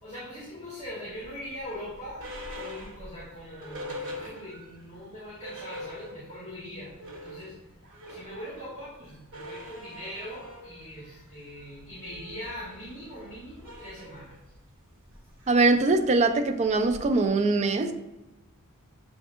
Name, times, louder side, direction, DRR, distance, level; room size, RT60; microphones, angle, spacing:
voice 1, 0.0-7.6 8.1-14.4, left 1 dB, 30° left, -9 dB, 1.5 m, -41 dB
sound 1, 1.2-4.8 5.1-5.2 5.4-6.5 6.8-17.3, left 1 dB, 60° right, 1.3 m, -44 dB
voice 2, 15.5-17.9, right 3 dB, 30° right, 7 dB, 0.4 m, -22 dB
7.6 x 2.6 x 2.5 m, 0.98 s
head